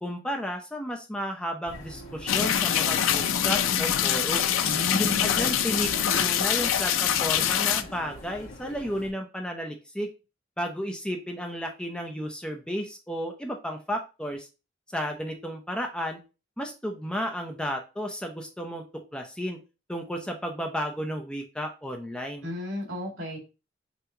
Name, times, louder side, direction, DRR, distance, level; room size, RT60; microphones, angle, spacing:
voice 1, 0.0-4.5 5.0-5.9 6.2-10.1 10.6-14.5 14.9-16.2 16.6-18.8 19.1-19.6 19.9-22.5, equal, 5° left, 3 dB, 0.6 m, -33 dB
sound 1, 1.7-9.1, left 1 dB, 75° left, 1.2 m, -42 dB
sound 2, 2.3-7.8, left 9 dB, 90° left, 0.4 m, -24 dB
voice 2, 4.6-5.2 22.4-23.4, left 1 dB, 75° right, -1 dB, 2.1 m, -33 dB
5.6 x 2.8 x 2.8 m, 0.29 s
head